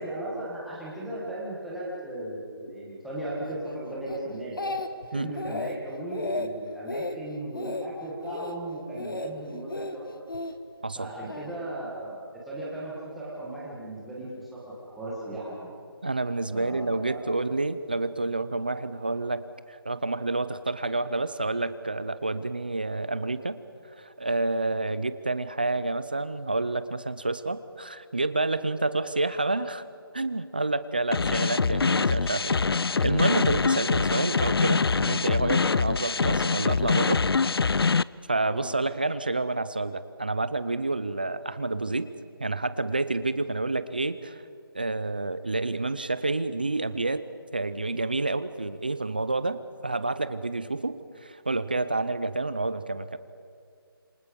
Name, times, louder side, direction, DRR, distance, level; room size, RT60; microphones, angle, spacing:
voice 1, 0.0-4.7 5.1-10.1 10.9-15.7 16.5-17.3 38.5-38.7, right 1 dB, ahead, -7 dB, 1.5 m, -36 dB
Speech, 4.1-5.1 5.4-5.8 6.1-6.5 6.9-7.2 7.5-7.9 8.2-8.5 9.0-9.3 9.7-10.5 11.3-11.5, left 2 dB, 60° left, 1.6 m, -33 dB
voice 2, 16.0-23.6 24.0-29.8 30.1-37.2 38.3-42.1 42.4-44.4 44.7-47.2 47.5-53.2, right 2 dB, 25° right, 14 dB, 0.5 m, -29 dB
sound 1, 31.1-38.0, left 4 dB, 75° left, 0.5 m, -24 dB
27.0 x 24.5 x 5.2 m, 2.3 s
figure-of-eight pair, 180°, 13 cm